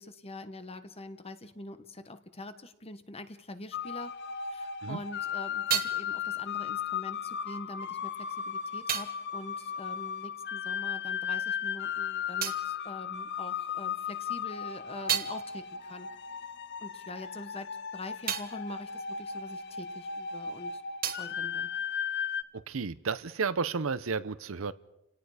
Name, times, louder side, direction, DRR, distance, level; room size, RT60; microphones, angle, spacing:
voice 1, 0.0-4.1 4.5-16.1 16.8-20.8 21.2-21.7, left 2 dB, 30° left, 1.3 m, -44 dB
sound 1, 3.7-22.4, left 7 dB, 55° left, 0.7 m, -36 dB
sound 2, 5.0-10.9 11.1-13.8 14.2-20.3 20.5-22.6, right 9 dB, 45° right, 1.3 m, -39 dB
voice 2, 22.5-24.7, right 5 dB, 70° right, 0.7 m, -32 dB
30.0 x 18.0 x 5.0 m
head